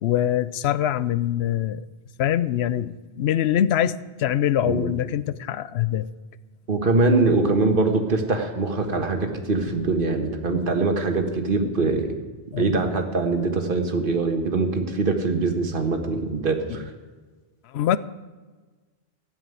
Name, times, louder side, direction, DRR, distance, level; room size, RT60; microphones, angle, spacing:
voice 1, 0.0-1.9 2.2-6.1 12.5-12.7 16.7-16.9 17.7-18.0, left 11 dB, 75° left, 16 dB, 0.8 m, -24 dB
voice 2, 6.7-12.2 12.6-16.9, right 3 dB, 55° right, 5 dB, 1.6 m, -23 dB
13.0 x 7.5 x 9.3 m, 1.3 s
omnidirectional pair, 1.1 m